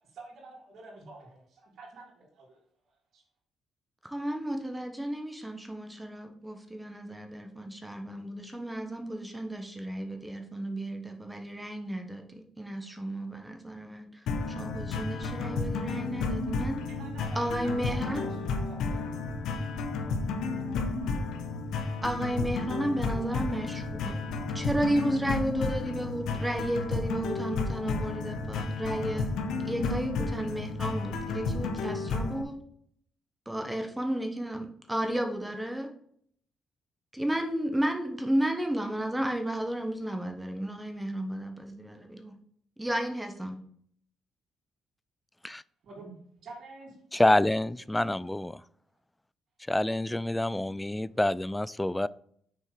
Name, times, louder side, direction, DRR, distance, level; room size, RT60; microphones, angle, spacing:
voice 1, 0.0-2.6 3.1-3.2 16.9-19.2 45.8-47.0, right 3 dB, 65° right, -8 dB, 3.4 m, -48 dB
voice 2, 4.0-14.2 14.5-16.8 17.3-18.3 22.0-24.2 24.5-29.3 29.6-32.6 33.4-35.9 37.1-42.3 42.8-43.6, right 1 dB, 10° right, 4 dB, 1.3 m, -33 dB
sound 1, 14.3-32.4, left 3 dB, 80° left, 1.1 m, -32 dB
voice 3, 47.1-48.6 49.7-52.1, left 1 dB, 10° left, 19 dB, 0.3 m, -27 dB
6.7 x 4.4 x 6.4 m, 0.63 s
cardioid pair, 90°, 0 cm